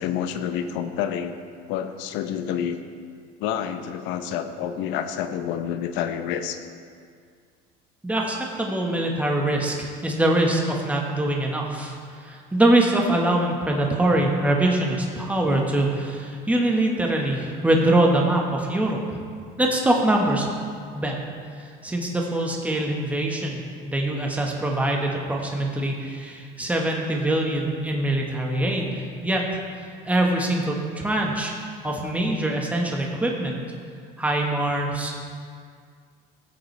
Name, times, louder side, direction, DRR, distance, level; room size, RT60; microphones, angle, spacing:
voice 1, 0.0-1.4 1.7-2.8 3.4-6.6, left 9 dB, 70° left, 9 dB, 0.8 m, -28 dB
voice 2, 8.0-19.2 19.6-20.5 20.9-21.2 21.8-29.4 30.1-31.5 31.8-33.5 34.2-35.1, right 1 dB, 5° right, 0 dB, 1.4 m, -23 dB
15.0 x 7.7 x 3.3 m, 2.1 s
supercardioid pair, 110°, 20 cm